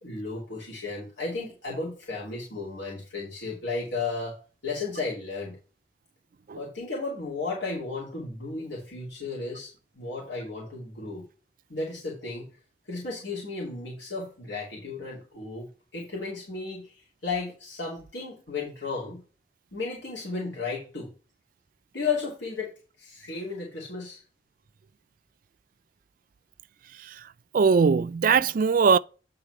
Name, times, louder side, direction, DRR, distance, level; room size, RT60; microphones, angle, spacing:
voice 1, 0.0-5.6 6.5-11.2 11.7-12.6 12.8-19.2 19.7-21.1 21.9-24.2, left 3 dB, 80° left, 2.8 m, -34 dB
voice 2, 27.5-29.0, right 5 dB, 50° right, 0.3 m, -20 dB
9.0 x 3.9 x 4.8 m
head